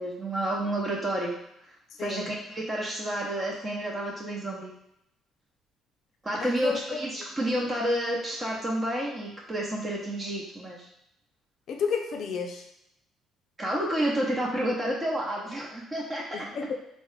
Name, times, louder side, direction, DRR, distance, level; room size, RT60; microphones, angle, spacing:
voice 1, 0.0-1.3 2.0-4.7 6.2-10.9 13.6-16.5, right 1 dB, 25° right, -4 dB, 0.8 m, -30 dB
voice 2, 6.4-7.0 11.7-12.6 16.3-16.7, left 5 dB, 65° left, 3 dB, 0.4 m, -31 dB
3.5 x 2.1 x 3.2 m, 0.79 s
supercardioid pair, 80°, 0 cm